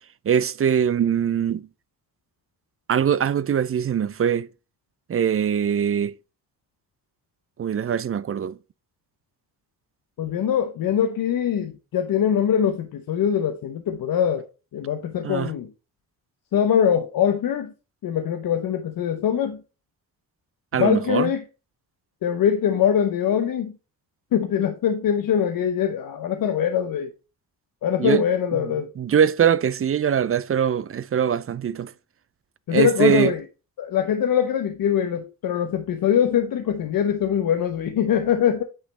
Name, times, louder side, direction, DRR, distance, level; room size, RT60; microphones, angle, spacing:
voice 1, 0.3-1.6 2.9-4.5 5.1-6.1 7.6-8.6 15.2-15.5 20.7-21.3 28.0-28.2 28.6-31.9 32.7-33.3, right 8 dB, 40° right, 0.5 m, -22 dB
voice 2, 10.2-14.4 14.7-15.7 16.5-17.7 18.0-19.6 20.7-21.4 22.2-23.7 24.3-27.1 27.8-28.9 32.7-33.4 33.8-38.6, left 8 dB, 80° left, 0.7 m, -22 dB
8.8 x 3.2 x 4.1 m
cardioid pair, 60°, 34 cm